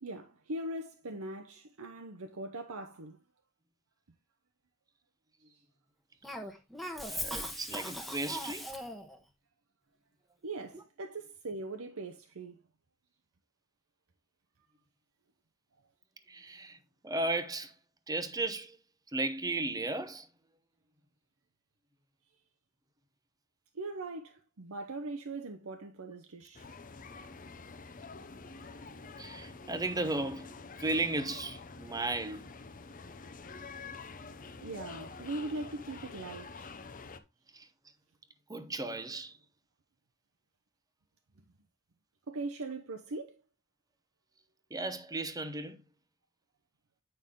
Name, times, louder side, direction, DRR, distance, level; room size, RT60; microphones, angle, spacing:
voice 1, 0.0-3.2 5.4-5.6 10.4-12.6 23.7-26.7 34.6-36.7 42.3-43.4, right 2 dB, 85° right, 0.8 m, -40 dB
Cough, 6.2-9.2, equal, ahead, 1.1 m, -39 dB
voice 2, 7.1-8.7 10.7-10.8 16.3-16.8 17.0-17.7 18.1-18.8 19.1-20.3 29.2-32.5 37.5-37.7 38.5-39.4 44.7-45.8, right 2 dB, 20° right, 0.8 m, -35 dB
sound 1, 26.5-37.2, left 4 dB, 40° left, 0.7 m, -47 dB
8.9 x 5.5 x 3.7 m
head